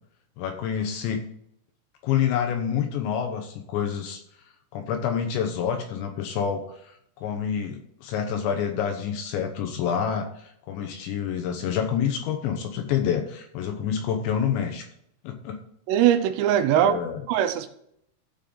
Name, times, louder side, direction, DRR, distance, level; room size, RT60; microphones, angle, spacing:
voice 1, 0.4-1.2 2.0-4.2 4.7-14.9 15.2-15.6 16.7-17.2, left 8 dB, 75° left, 5 dB, 2.8 m, -28 dB
voice 2, 15.9-17.0 17.3-17.7, right 10 dB, 85° right, 9 dB, 3.4 m, -21 dB
15.5 x 5.4 x 3.8 m, 0.72 s
omnidirectional pair, 5.9 m